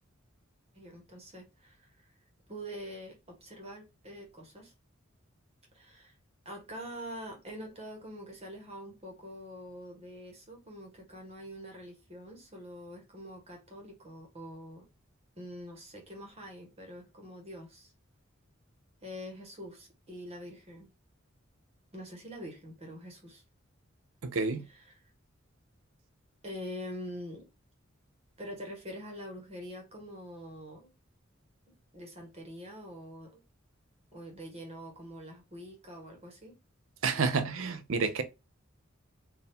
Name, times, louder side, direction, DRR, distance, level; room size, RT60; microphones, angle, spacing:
voice 1, 0.7-1.9 2.5-4.7 5.7-6.1 6.4-14.8 15.4-17.9 19.0-20.9 21.9-23.4 24.7-25.0 26.4-27.5 28.4-30.9 31.7-33.4 34.1-36.6, equal, 30° right, 1.4 m, -45 dB
voice 2, 24.2-24.7 37.0-38.2, right 4 dB, 75° right, 0.6 m, -29 dB
4.3 x 2.7 x 3.5 m
head